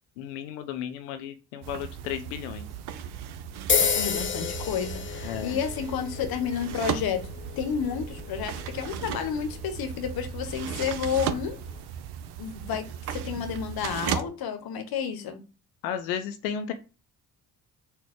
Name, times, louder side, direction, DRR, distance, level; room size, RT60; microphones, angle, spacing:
voice 1, 0.2-2.7 5.2-5.6 15.8-16.7, left 9 dB, 75° left, 9 dB, 0.6 m, -33 dB
sound 1, 1.6-14.2, right 9 dB, 55° right, 0.6 m, -36 dB
sound 2, 3.7-11.8, left 6 dB, 25° left, 0.6 m, -33 dB
voice 2, 4.0-7.2 7.6-11.6 12.4-15.4, left 7 dB, 50° left, 7 dB, 1.0 m, -31 dB
4.1 x 2.2 x 3.5 m, 0.32 s
hypercardioid pair, 45°, 48 cm